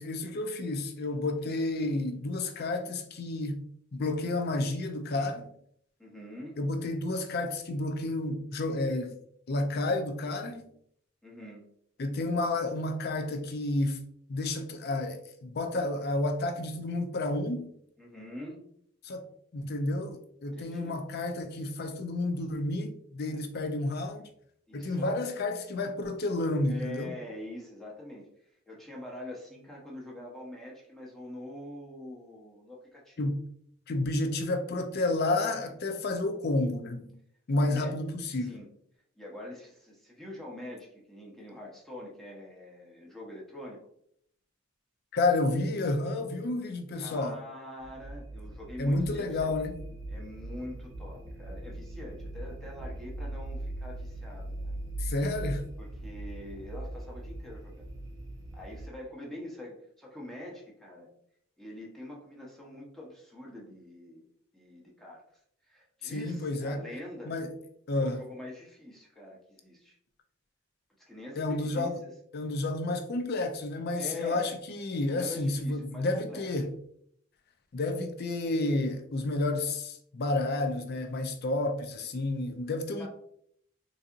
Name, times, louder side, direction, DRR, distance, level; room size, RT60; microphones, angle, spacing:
voice 1, 0.0-3.6 3.9-5.5 6.6-9.2 9.5-10.7 12.0-14.0 14.3-17.7 19.0-19.2 19.5-24.3 24.7-27.1 33.2-33.4 33.9-37.1 37.5-38.5 45.1-47.4 48.8-49.8 55.0-55.6 66.0-66.8 67.2-67.6 67.9-68.2 71.4-72.0 72.3-76.7 77.7-83.1, left 2 dB, 50° left, 0.5 m, -30 dB
voice 2, 6.0-6.6 11.2-11.7 18.0-18.6 20.5-21.0 24.7-25.3 26.7-28.3 28.7-33.3 37.6-38.0 38.4-38.7 39.2-43.8 47.0-49.5 50.1-54.8 55.8-57.9 58.5-61.1 61.6-64.3 64.5-65.2 65.7-67.3 68.0-70.0 71.0-72.1 73.9-74.5 75.1-76.5 83.0-83.1, left 1 dB, ahead, 0.8 m, -44 dB
sound 1, 47.8-58.9, right 1 dB, 60° right, 0.8 m, -40 dB
4.0 x 2.7 x 2.4 m
head